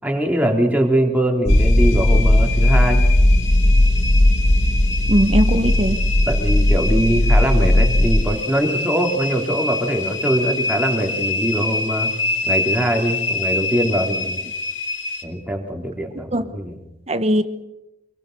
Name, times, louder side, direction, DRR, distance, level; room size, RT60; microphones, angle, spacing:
voice 1, 0.0-3.0 6.3-12.1 12.4-14.4 15.2-16.8, right 1 dB, 5° right, 1 dB, 3.6 m, -22 dB
sound 1, 1.4-8.2, left 1 dB, 50° left, 1.4 m, -16 dB
sound 2, 1.5-15.2, left 3 dB, 75° left, 2.9 m, -26 dB
voice 2, 5.1-6.0 16.3-16.5 17.1-17.4, equal, 30° right, 10 dB, 1.2 m, -19 dB
27.0 x 21.5 x 6.8 m, 0.92 s
head